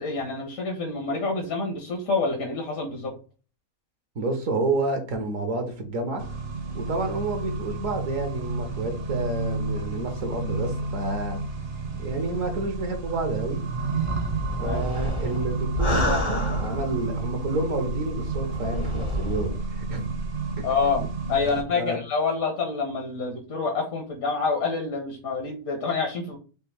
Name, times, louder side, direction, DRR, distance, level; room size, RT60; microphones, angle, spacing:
voice 1, 0.0-3.1 14.6-14.8 20.6-26.4, left 4 dB, 75° left, 1.5 m, -27 dB
voice 2, 4.1-6.2 6.7-11.4 12.0-13.6 14.6-20.1 20.6-20.7 21.4-22.0, right 2 dB, 65° right, 1.4 m, -29 dB
Accelerating revving vroom, 6.2-21.6, right 3 dB, 45° right, 0.9 m, -31 dB
sound 1, 14.0-17.2 17.9-19.6, left 1 dB, 30° left, 0.6 m, -29 dB
5.3 x 2.6 x 3.5 m
omnidirectional pair, 1.5 m